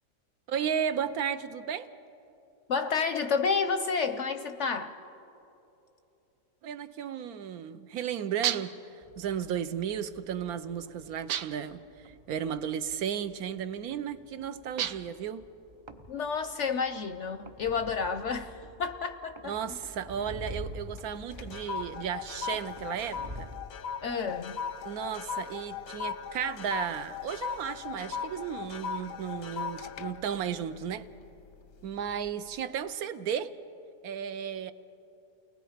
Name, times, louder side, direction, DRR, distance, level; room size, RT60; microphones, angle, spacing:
voice 1, 0.5-1.9 6.6-8.8 9.2-15.5 19.4-23.5 24.8-31.1 31.8-33.5 34.0-34.7, right 8 dB, 70° right, 12 dB, 1.1 m, -34 dB
voice 2, 2.7-4.9 16.1-19.5 24.0-24.6, left 5 dB, 60° left, 9 dB, 0.8 m, -30 dB
sound 1, 8.4-8.9 11.3-11.8 14.8-15.2, right 10 dB, 90° right, 1.3 m, -32 dB
sound 2, 9.0-23.7, equal, 30° right, 0.5 m, -48 dB
sound 3, 20.1-20.7 21.0-31.5 32.0-32.3, left 7 dB, 90° left, 1.4 m, -38 dB
29.5 x 20.0 x 5.0 m, 2.8 s
omnidirectional pair, 1.7 m